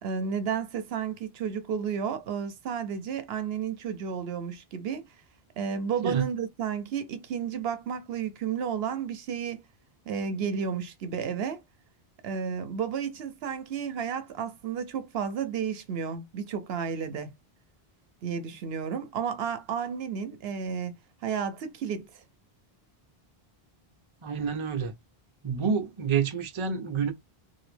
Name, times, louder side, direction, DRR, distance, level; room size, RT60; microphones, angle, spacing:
voice 1, 0.0-5.1 5.6-9.6 10.1-11.6 12.2-17.3 18.2-20.9 21.2-22.2, right 7 dB, 75° right, 0.8 m, -32 dB
voice 2, 24.2-24.9 25.4-27.1, right 6 dB, 35° right, 0.6 m, -28 dB
2.9 x 2.7 x 3.2 m
omnidirectional pair, 1.0 m